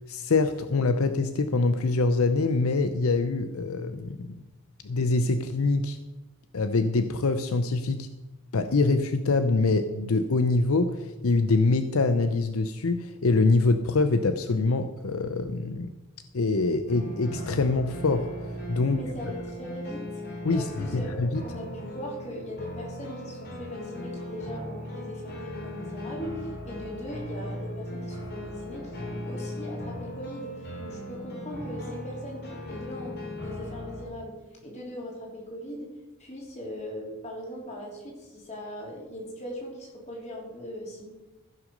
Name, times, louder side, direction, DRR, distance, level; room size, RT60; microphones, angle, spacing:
voice 1, 0.1-4.3 4.8-6.0 6.5-8.1 8.5-15.9 16.3-18.3 18.7-19.0 20.4-21.4, left 3 dB, 75° left, 9 dB, 0.7 m, -24 dB
sound 1, 16.9-34.0, left 1 dB, 50° left, 3.8 m, -38 dB
voice 2, 18.8-20.2 20.5-35.9 36.2-41.1, equal, 30° left, -2 dB, 3.5 m, -40 dB
15.0 x 6.2 x 6.5 m, 1.1 s
head